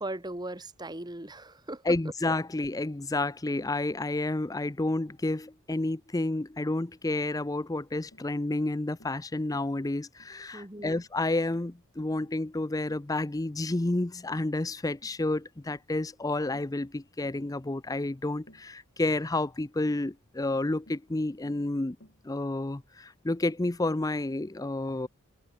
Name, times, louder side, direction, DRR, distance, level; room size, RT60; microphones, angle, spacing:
voice 1, 0.0-1.8 10.5-11.0, right 1 dB, 20° right, 2.0 m, -38 dB
voice 2, 1.9-22.0 22.2-25.1, left 2 dB, 15° left, 0.5 m, -30 dB
Tap, 7.3-7.5 8.1-8.3 9.0-9.2 9.5-9.8 10.2-10.4 10.8-11.0 11.5-11.7 12.2-12.5 12.9-13.1 13.7-13.9 14.3-14.6 15.0-15.2 15.7-15.9 16.5-16.8 17.2-17.4 18.5-18.7 19.8-20.1 20.9-21.1 21.5-21.7 22.0-22.3, left 1 dB, 55° left, 7.3 m, -58 dB
head